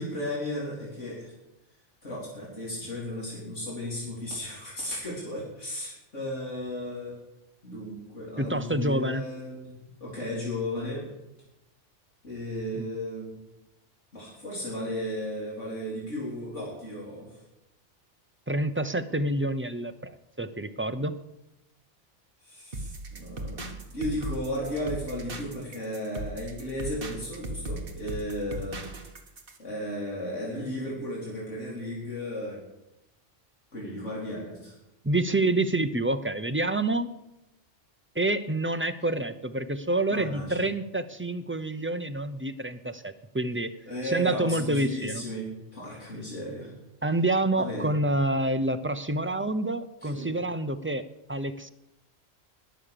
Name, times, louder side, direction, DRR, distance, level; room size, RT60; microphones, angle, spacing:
voice 1, 0.0-1.3 2.0-7.2 7.6-9.7 10.0-11.1 12.2-13.4 14.1-17.4 22.4-28.9 29.6-32.6 33.7-34.8 40.1-40.6 43.9-46.7 47.6-47.9 50.0-50.3, equal, 85° left, -5 dB, 4.3 m, -35 dB
voice 2, 8.4-9.2 12.7-12.9 18.5-21.2 35.0-37.1 38.1-43.8 44.0-45.2 47.0-51.7, right 2 dB, 15° right, 10 dB, 0.4 m, -28 dB
sound 1, 22.7-29.6, right 1 dB, 50° right, 1.7 m, -38 dB
20.5 x 7.4 x 6.8 m, 0.91 s
omnidirectional pair, 1.2 m